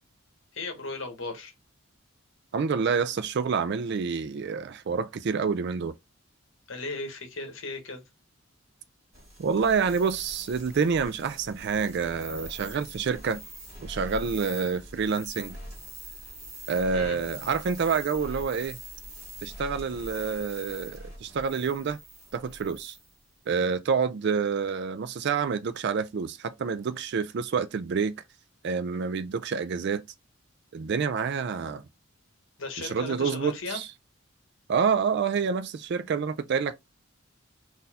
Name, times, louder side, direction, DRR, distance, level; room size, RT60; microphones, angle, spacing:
voice 1, 0.5-1.5 6.7-8.0 16.9-17.2 32.6-33.8, left 3 dB, 60° left, 1.0 m, -36 dB
voice 2, 2.5-5.9 9.4-13.4 13.8-15.6 16.7-18.8 19.4-22.0 22.3-23.0 23.5-28.1 28.6-30.0 30.7-31.8 32.8-33.9 34.7-36.7, right 5 dB, 55° right, 0.3 m, -28 dB
sound 1, 9.1-23.2, right 1 dB, 35° right, 2.0 m, -43 dB
3.9 x 2.6 x 2.7 m
head